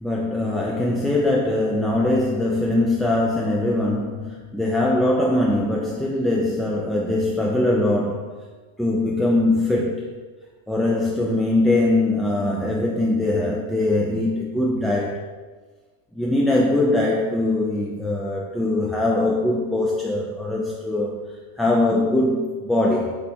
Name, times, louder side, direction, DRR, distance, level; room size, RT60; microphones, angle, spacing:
voice 1, 0.0-8.2 8.8-10.1 10.7-15.2 16.1-21.2 21.6-23.1, left 2 dB, 5° left, -3 dB, 0.3 m, -22 dB
2.9 x 2.9 x 3.1 m, 1.4 s
figure-of-eight pair, 90°, 0 cm